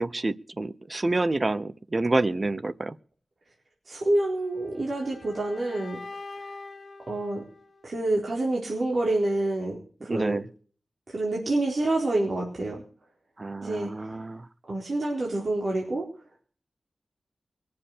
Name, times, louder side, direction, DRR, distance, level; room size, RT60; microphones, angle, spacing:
voice 1, 0.0-3.0 10.1-10.4 13.4-14.5, right 2 dB, 30° right, 16 dB, 0.7 m, -28 dB
voice 2, 3.9-6.0 7.1-7.4 7.8-10.4 11.1-12.8 13.6-13.9 14.7-16.1, right 2 dB, 50° right, -2 dB, 4.3 m, -27 dB
sound 1, 4.2-8.2, left 3 dB, 50° left, 1.8 m, -44 dB
22.5 x 7.8 x 6.8 m, 0.44 s
wide cardioid pair, 105°, 0 cm